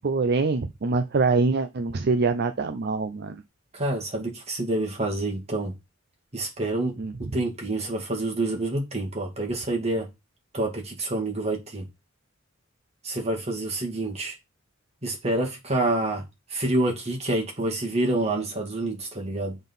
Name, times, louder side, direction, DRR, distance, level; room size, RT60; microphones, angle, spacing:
voice 1, 0.0-3.4 7.0-7.1, right 3 dB, 55° right, 0.5 m, -24 dB
voice 2, 3.7-5.7 6.3-7.0 7.3-10.1 10.5-11.9 13.0-14.4 15.0-16.2 16.5-19.6, right 2 dB, 35° right, 2.1 m, -27 dB
7.1 x 4.0 x 5.3 m
head